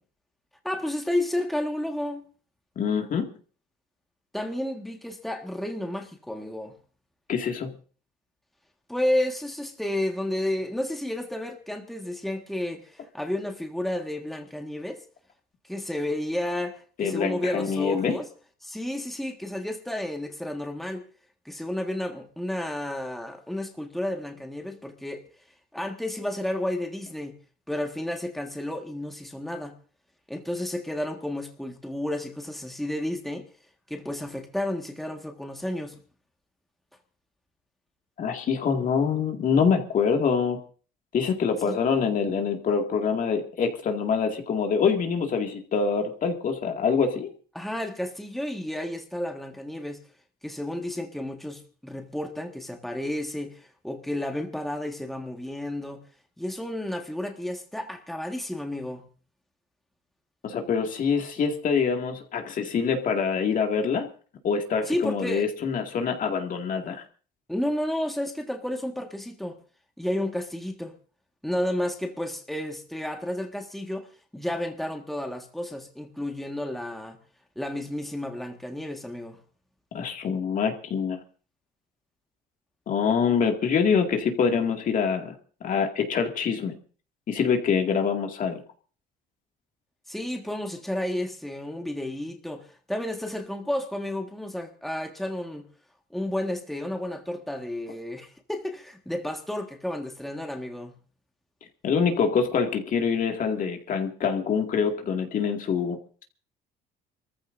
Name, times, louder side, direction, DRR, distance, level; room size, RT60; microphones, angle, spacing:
voice 1, 0.6-2.2 4.3-6.8 8.9-15.0 15.7-18.3 18.6-21.1 21.4-25.2 25.7-27.4 27.7-29.7 30.3-33.5 33.9-36.0 41.7-41.8 47.5-50.0 50.4-56.0 56.4-59.1 64.9-65.5 67.5-69.6 70.0-70.9 71.4-74.1 74.3-77.2 77.5-79.4 90.1-95.7 96.1-101.0, left 1 dB, ahead, 1.7 m, -31 dB
voice 2, 2.8-3.3 7.3-7.7 17.0-18.1 38.2-40.6 41.1-47.3 60.4-64.1 64.4-67.0 79.9-81.2 82.9-85.4 85.6-86.7 87.3-88.6 101.8-106.2, left 6 dB, 50° left, 2.2 m, -25 dB
27.0 x 14.5 x 2.7 m
cardioid pair, 110°, 17 cm